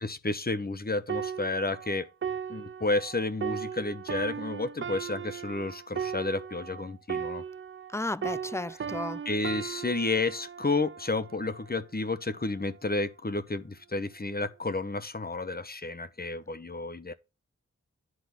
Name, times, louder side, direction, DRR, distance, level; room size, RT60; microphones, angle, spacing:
voice 1, 0.0-2.1 2.5-7.4 9.2-17.1, left 3 dB, 30° left, 1.0 m, -31 dB
sound 1, 1.1-8.0 8.2-11.8 12.4-12.7, right 7 dB, 45° right, 0.5 m, -37 dB
voice 2, 7.9-9.2, left 2 dB, 10° left, 0.6 m, -33 dB
10.5 x 3.8 x 7.3 m
cardioid pair, 45°, 29 cm